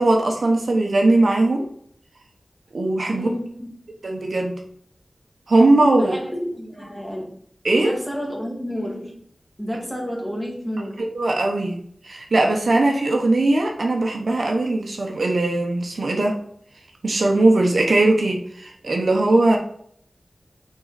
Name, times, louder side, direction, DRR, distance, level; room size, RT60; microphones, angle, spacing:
voice 1, 0.0-1.7 2.7-3.3 4.0-4.6 5.5-6.1 7.6-7.9 11.1-16.4 17.0-19.6, right 2 dB, 85° right, 1 dB, 1.0 m, -19 dB
voice 2, 3.1-3.9 6.0-7.4 7.7-9.3 9.6-11.1, equal, 5° left, -2 dB, 1.9 m, -30 dB
6.3 x 3.8 x 4.1 m, 0.65 s
wide cardioid pair, 65°, 0 cm